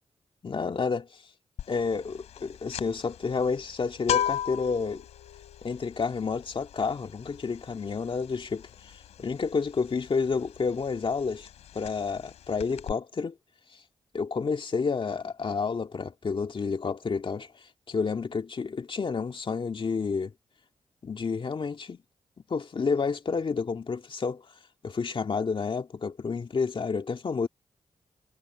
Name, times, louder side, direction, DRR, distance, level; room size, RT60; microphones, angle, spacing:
voice 1, 0.4-1.2 1.7-5.0 5.6-8.9 9.2-11.5 11.7-13.3 13.7-13.8 14.1-20.3 21.0-22.0 22.5-24.5 24.8-27.5, left 5 dB, 50° left, 2.1 m, -30 dB
sound 1, 1.6-1.9 2.1-10.7 11.0-11.2 11.4-12.3 12.6-12.9, left 10 dB, 90° left, 3.8 m, -34 dB
cardioid pair, 55°, 11 cm